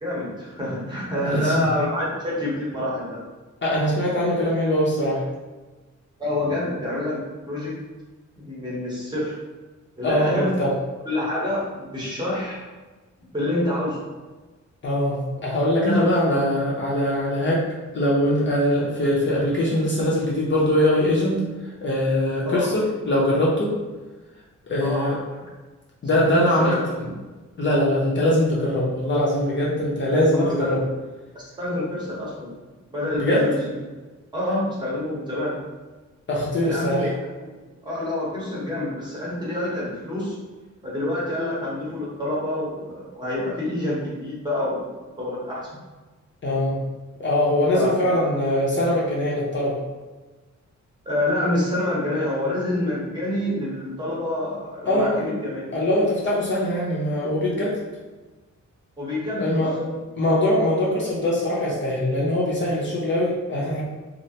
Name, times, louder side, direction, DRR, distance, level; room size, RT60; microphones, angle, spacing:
voice 1, 0.0-3.2 6.2-7.8 8.4-9.3 10.0-10.5 11.1-12.6 13.2-14.0 15.8-16.1 22.4-22.7 24.8-25.4 26.1-26.3 26.6-26.8 30.3-30.7 31.6-32.5 32.9-33.8 34.3-35.6 36.6-37.1 37.4-37.5 37.8-40.4 40.8-44.9 45.2-45.7 47.7-48.3 51.0-55.6 59.0-59.9, left 1 dB, 15° right, -7 dB, 0.8 m, -27 dB
voice 2, 1.2-1.7 3.6-5.3 10.0-10.7 14.8-17.6 17.9-23.7 24.7-25.2 26.0-27.1 27.6-30.8 33.1-33.5 36.3-37.1 46.4-46.8 47.2-49.8 54.9-55.3 55.7-57.8 59.4-59.7 60.2-63.8, left 1 dB, 40° left, -5 dB, 0.5 m, -22 dB
3.1 x 2.4 x 2.7 m, 1.2 s
wide cardioid pair, 180°, 30 cm